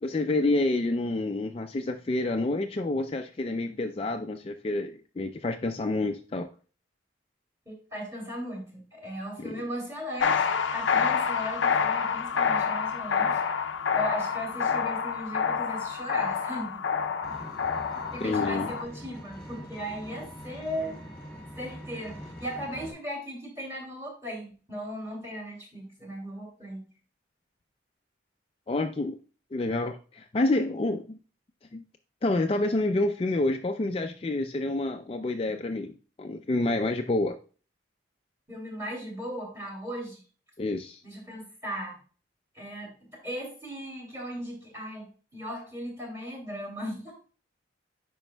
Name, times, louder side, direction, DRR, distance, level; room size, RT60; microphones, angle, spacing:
voice 1, 0.0-6.5 9.4-9.6 18.2-18.7 28.7-29.2 29.5-31.2 31.7-31.8 32.2-37.4 40.6-41.0, left 2 dB, 30° left, 5 dB, 0.4 m, -28 dB
voice 2, 7.7-13.4 13.9-16.8 18.1-21.0 21.6-26.9 38.5-40.2 41.0-42.0 42.5-42.9 43.2-47.1, equal, 15° right, -1 dB, 2.6 m, -37 dB
sound 1, 10.2-18.9, left 6 dB, 85° left, 0.5 m, -28 dB
Vehicle, 17.2-22.9, equal, 5° left, 2.1 m, -43 dB
8.9 x 5.3 x 2.2 m, 0.37 s
head